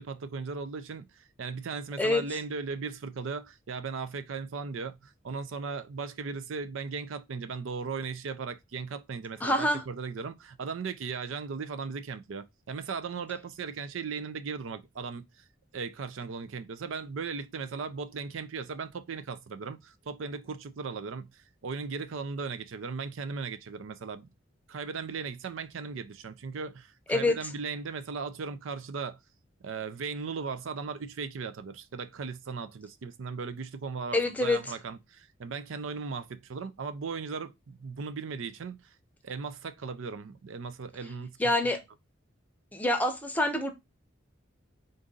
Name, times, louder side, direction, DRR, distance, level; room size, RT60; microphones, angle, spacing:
voice 1, 0.0-15.4 15.7-24.3 24.7-29.2 29.6-38.9 39.2-41.4, right 5 dB, 80° right, 0.5 m, -37 dB
voice 2, 9.4-9.8 27.1-27.4 34.1-34.6 41.4-41.8 42.7-43.7, left 2 dB, 10° left, 0.6 m, -26 dB
3.9 x 2.6 x 3.7 m
head